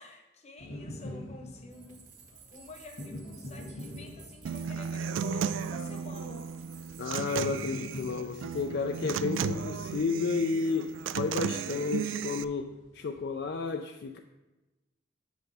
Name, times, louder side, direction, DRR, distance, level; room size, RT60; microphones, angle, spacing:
voice 1, 0.0-2.1 2.5-6.5, left 2 dB, 35° left, 4 dB, 0.9 m, -49 dB
sound 1, 0.6-13.5, left 1 dB, 80° left, 1.8 m, -46 dB
sound 2, 1.7-8.1 8.4-8.6 8.9-9.5, right 6 dB, 45° right, 1.3 m, -56 dB
Human voice / Acoustic guitar, 4.4-12.4, right 6 dB, 85° right, 0.3 m, -34 dB
voice 2, 7.0-14.2, left 4 dB, 60° left, 5 dB, 0.4 m, -32 dB
8.0 x 6.7 x 3.4 m, 1.1 s
head